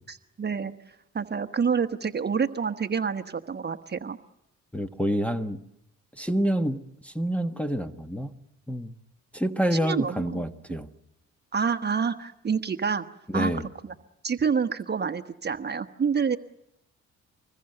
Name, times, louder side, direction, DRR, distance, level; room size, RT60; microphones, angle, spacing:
voice 1, 0.1-0.7 1.1-4.2 9.7-10.4 11.5-13.0 13.3-13.5 13.8-13.9 14.2-16.4, right 6 dB, 35° right, 8 dB, 1.2 m, -27 dB
voice 2, 4.7-5.6 6.1-8.3 8.7-8.9 9.3-10.9 13.3-13.7, equal, 5° left, 8 dB, 1.3 m, -28 dB
25.5 x 21.0 x 7.9 m, 0.84 s
cardioid pair, 90°, 30 cm